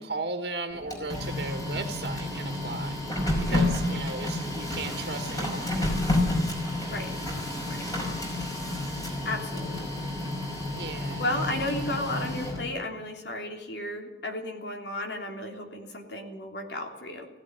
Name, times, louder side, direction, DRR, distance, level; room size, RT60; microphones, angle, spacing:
voice 1, 0.0-3.0 3.4-6.2 10.8-11.4, right 3 dB, 65° right, 6 dB, 1.5 m, -36 dB
Printer, 0.7-12.8, left 1 dB, 20° left, 5.3 m, -30 dB
voice 2, 9.2-9.9 11.2-17.3, left 1 dB, 75° left, 3 dB, 3.4 m, -33 dB
16.5 x 16.5 x 9.6 m, 0.93 s
head